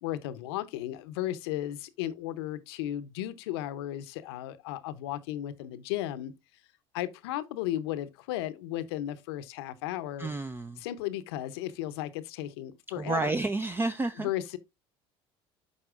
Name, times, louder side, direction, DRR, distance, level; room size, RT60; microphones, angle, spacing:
voice 1, 0.0-6.3 6.9-10.3 10.8-13.3 14.2-14.6, left 13 dB, 80° left, 0.6 m, -35 dB
voice 2, 10.2-10.8 13.0-14.3, right 3 dB, 15° right, 0.4 m, -30 dB
11.5 x 4.2 x 2.4 m
hypercardioid pair, 75°, 13 cm